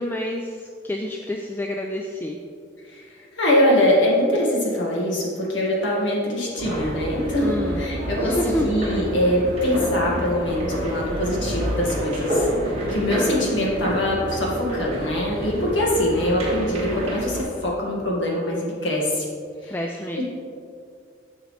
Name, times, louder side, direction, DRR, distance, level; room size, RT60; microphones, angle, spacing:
voice 1, 0.0-2.4 7.4-7.8 8.2-8.7 16.1-16.5 19.6-20.2, left 1 dB, 10° left, 1 dB, 0.3 m, -29 dB
voice 2, 2.9-7.5 7.8-19.3 19.6-19.7 20.2-20.3, left 1 dB, 90° left, -3 dB, 1.9 m, -23 dB
sound 1, 6.6-17.4, right 1 dB, 35° right, 1.8 m, -28 dB
9.0 x 6.5 x 3.3 m, 2.3 s
head